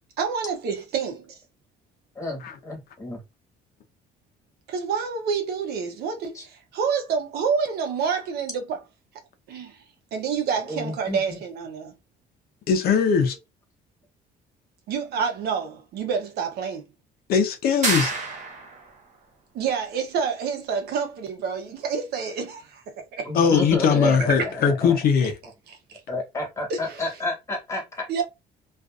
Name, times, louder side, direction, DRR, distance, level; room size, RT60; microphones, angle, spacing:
voice 1, 0.2-1.3 4.7-8.8 9.5-9.8 10.1-11.9 14.9-16.8 19.5-23.3 24.4-24.5 25.9-26.0 26.7-27.0 28.1-28.2, right 6 dB, 70° right, 0.8 m, -28 dB
voice 2, 2.1-3.2 6.3-6.4 10.7-11.4 23.2-24.9 26.1-28.1, left 1 dB, 20° left, 1.4 m, -30 dB
voice 3, 12.7-13.4 17.3-18.1 23.3-25.4, left 6 dB, 65° left, 0.7 m, -20 dB
sound 1, 17.8-18.9, right 3 dB, 45° right, 0.9 m, -27 dB
2.5 x 2.5 x 2.4 m
cardioid pair, 110°, 17 cm